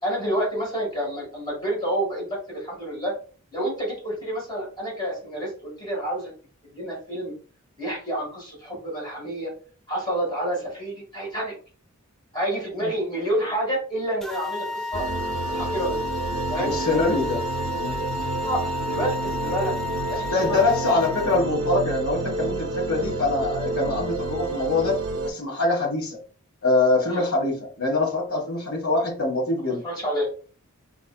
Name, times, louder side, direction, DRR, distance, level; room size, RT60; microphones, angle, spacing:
voice 1, 0.0-3.1 3.5-6.3 6.7-7.3 7.8-9.5 9.9-11.5 12.3-15.0 15.5-16.0 16.5-16.7 18.2-19.7 20.1-20.7 27.1-27.2 29.8-30.3, right 1 dB, 20° left, -3 dB, 1.7 m, -28 dB
sound 1, 14.2-21.4, left 2 dB, ahead, 0.4 m, -32 dB
sound 2, 14.9-25.3, right 2 dB, 85° right, 0.6 m, -29 dB
voice 2, 16.6-17.4 17.7-17.9 20.3-25.0 25.2-26.2 26.6-29.8, left 2 dB, 75° left, -1 dB, 1.5 m, -24 dB
4.1 x 3.2 x 2.3 m, 0.39 s
head